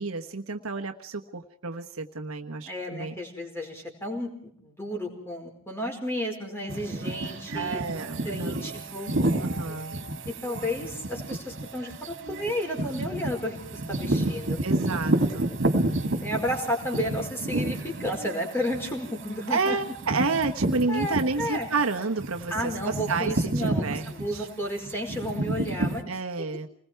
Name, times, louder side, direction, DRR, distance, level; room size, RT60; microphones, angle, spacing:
voice 1, 0.0-3.1 7.5-8.5 9.4-9.9 14.6-15.5 19.5-24.5 26.1-26.7, right 4 dB, 75° right, 5 dB, 1.3 m, -30 dB
voice 2, 2.6-7.8 8.2-9.1 10.3-13.6 13.9-14.6 16.1-19.8 20.9-21.7 22.5-26.0, equal, 10° left, 2 dB, 5.1 m, -32 dB
sound 1, 6.7-21.8 22.2-26.0, right 1 dB, 55° right, 2.9 m, -30 dB
29.0 x 21.0 x 4.6 m, 0.63 s
head